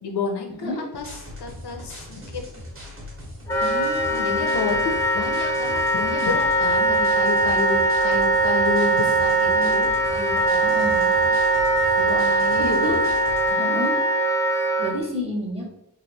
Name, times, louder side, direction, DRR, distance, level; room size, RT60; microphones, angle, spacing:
voice 1, 0.0-2.5 4.1-11.3 12.0-13.1 13.5-13.7, left 4 dB, 80° left, 2 dB, 0.8 m, -30 dB
sound 1, 1.0-13.5, left 1 dB, 35° right, 1.3 m, -40 dB
Wind instrument woodwind instrument, 3.5-14.9, right 2 dB, 10° left, 0.7 m, -21 dB
voice 2, 3.6-4.3 9.5-9.8 10.6-11.0 12.6-12.9 13.6-13.9 14.8-15.7, equal, 15° right, -3 dB, 1.1 m, -30 dB
3.3 x 2.6 x 4.0 m, 0.80 s
wide cardioid pair, 155°, 39 cm